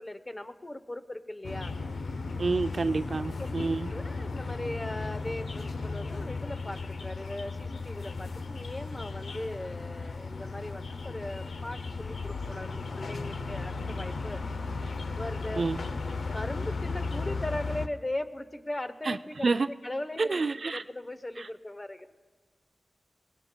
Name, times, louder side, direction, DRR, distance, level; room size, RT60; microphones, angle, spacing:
voice 1, 0.0-1.8 3.2-14.4 15.2-16.0 16.3-22.1, left 1 dB, 30° left, 0.7 m, -39 dB
sound 1, 1.4-17.9, left 3 dB, 80° left, 0.5 m, -35 dB
voice 2, 2.4-3.9 15.6-15.8 19.1-19.2 19.4-19.7 20.2-20.8, right 3 dB, 65° right, 0.3 m, -28 dB
22.5 x 18.5 x 2.2 m
cardioid pair, 55°, 0 cm